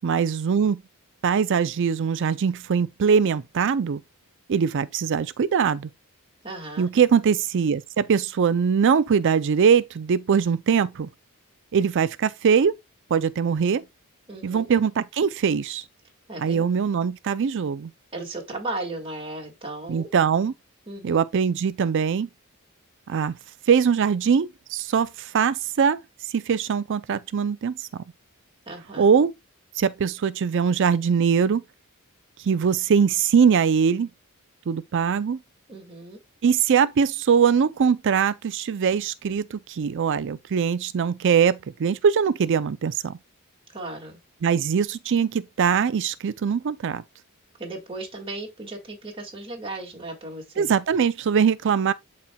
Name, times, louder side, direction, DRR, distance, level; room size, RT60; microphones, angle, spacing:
voice 1, 0.0-0.8 1.2-4.0 4.5-5.9 6.8-11.1 11.7-12.7 13.1-13.8 14.4-15.8 16.4-17.9 19.9-20.5 21.0-22.3 23.1-23.3 23.7-26.0 26.3-28.0 29.0-29.3 29.8-31.6 32.4-34.1 34.7-35.4 36.4-43.2 44.4-47.0 50.6-51.9, right 6 dB, 55° right, 0.4 m, -22 dB
voice 2, 6.4-6.9 14.3-14.7 16.3-16.6 18.1-20.1 20.9-21.2 28.7-29.1 35.7-36.2 43.7-44.2 47.6-50.7, right 2 dB, 25° right, 1.9 m, -36 dB
11.5 x 4.2 x 2.2 m
head